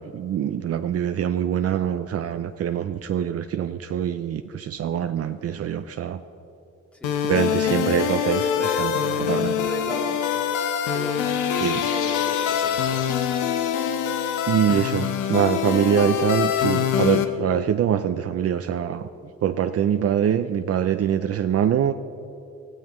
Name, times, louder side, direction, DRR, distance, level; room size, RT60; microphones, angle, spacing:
voice 1, 0.0-6.2 7.2-8.4 8.8-8.9 9.3-9.5 11.6-11.9 14.5-19.0 19.4-21.9, right 9 dB, 55° right, 8 dB, 0.6 m, -24 dB
voice 2, 6.9-7.2 8.4-10.2 10.9-11.4 11.7-13.1 14.7-14.9, left 1 dB, 5° left, 2 dB, 2.2 m, -36 dB
sound 1, 7.0-17.2, left 8 dB, 85° left, 0.9 m, -24 dB
23.5 x 15.0 x 3.1 m, 2.8 s
cardioid pair, 90°, 30 cm